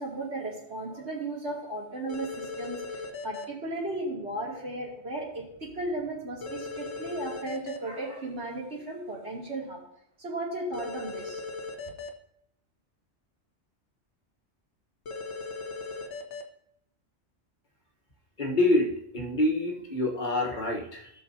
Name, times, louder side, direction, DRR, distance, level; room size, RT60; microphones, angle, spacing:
voice 1, 0.0-9.8 10.2-11.4, right 2 dB, 75° right, -4 dB, 3.0 m, -35 dB
sound 1, 2.1-3.4 6.4-7.8 10.7-12.1 15.1-16.4, left 3 dB, 85° left, 1.3 m, -38 dB
voice 2, 18.4-21.1, left 1 dB, 45° left, 0 dB, 1.4 m, -26 dB
16.5 x 6.3 x 2.8 m, 0.72 s
omnidirectional pair, 1.1 m